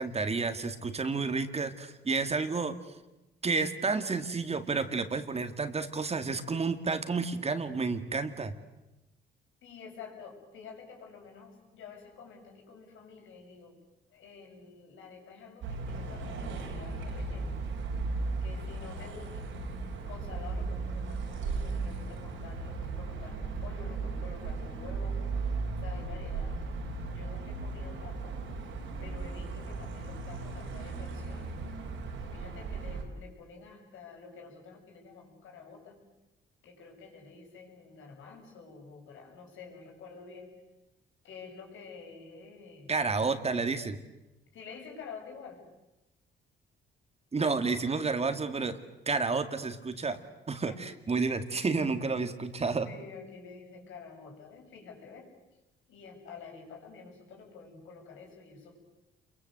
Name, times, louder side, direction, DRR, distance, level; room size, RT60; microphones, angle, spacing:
voice 1, 0.0-2.8 3.4-8.5 42.9-44.0 47.3-50.2 50.5-52.9, right 4 dB, 30° right, 9 dB, 2.3 m, -30 dB
voice 2, 9.6-13.8 14.1-17.6 18.4-19.5 20.0-25.6 25.8-26.8 27.1-28.4 29.0-31.6 32.3-36.0 36.6-40.6 41.2-42.9 44.5-45.6 50.7-50.8 52.6-55.3 55.9-58.8, left 5 dB, 80° left, 1 dB, 7.3 m, -49 dB
sound 1, 15.6-33.0, right 3 dB, 85° right, 5.5 m, -36 dB
28.0 x 23.0 x 8.0 m, 0.99 s
cardioid pair, 90°, 20 cm